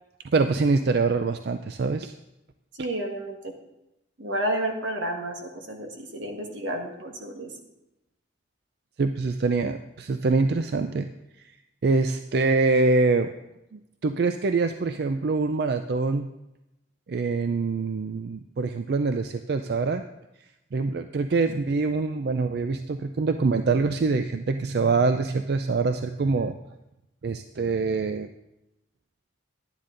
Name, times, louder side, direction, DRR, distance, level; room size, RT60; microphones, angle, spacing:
voice 1, 0.3-2.1 9.0-11.1 11.4-11.5 11.8-13.3 13.7-16.3 17.1-20.0 20.7-26.6 27.2-28.3, right 3 dB, 60° right, 8 dB, 0.4 m, -24 dB
voice 2, 2.8-3.5 4.2-7.5, right 1 dB, 85° right, 3 dB, 1.6 m, -31 dB
11.5 x 9.6 x 3.8 m, 0.91 s
head